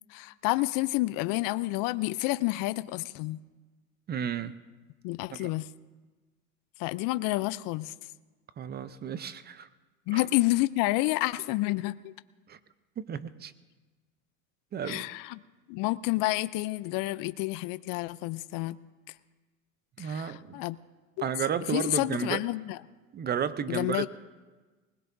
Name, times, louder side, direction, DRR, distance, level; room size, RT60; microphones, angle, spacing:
voice 1, 0.1-3.4 5.0-5.7 6.8-7.9 10.1-12.1 14.8-15.4 15.7-18.8 20.0-20.8 21.2-21.3 21.7-22.8 23.7-24.1, left 19 dB, 50° left, 15 dB, 0.6 m, -29 dB
voice 2, 4.1-4.5 5.3-5.5 8.6-9.7 10.1-10.2 12.5-12.6 13.0-13.5 14.7-15.0 20.0-20.6 21.2-22.4 23.1-24.1, right 8 dB, 25° right, 14 dB, 0.6 m, -32 dB
20.5 x 20.0 x 2.7 m, 1.3 s
supercardioid pair, 110°, 42 cm